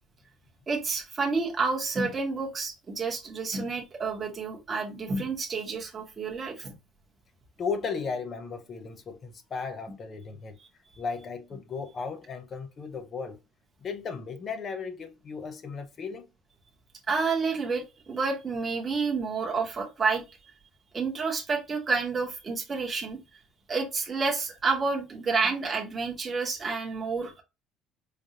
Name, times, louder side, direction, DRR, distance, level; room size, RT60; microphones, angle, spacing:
voice 1, 0.7-6.8 17.1-20.2 20.9-23.2 23.7-27.4, right 4 dB, 15° right, 1.0 m, -29 dB
voice 2, 7.6-10.6 11.0-13.4 13.8-16.3, left 5 dB, 25° left, 0.6 m, -35 dB
4.9 x 2.5 x 2.8 m
cardioid pair, 180°, 0 cm